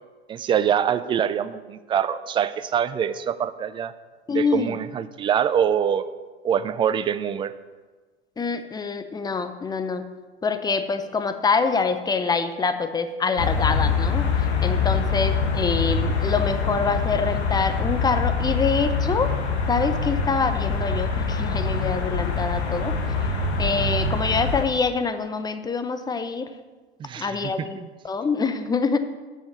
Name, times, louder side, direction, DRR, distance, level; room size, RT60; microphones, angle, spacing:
voice 1, 0.3-3.9 4.3-6.1 6.4-7.5 27.0-27.9, right 8 dB, 15° right, 14 dB, 0.3 m, -24 dB
voice 2, 4.3-4.7 8.4-10.1 10.4-19.3 19.7-22.9 23.6-26.5 27.2-27.8 28.0-29.0, left 4 dB, 10° left, 9 dB, 0.7 m, -25 dB
sound 1, 13.4-24.7, left 4 dB, 80° left, 1.5 m, -24 dB
7.6 x 6.5 x 7.0 m, 1.3 s
hypercardioid pair, 95°, 33 cm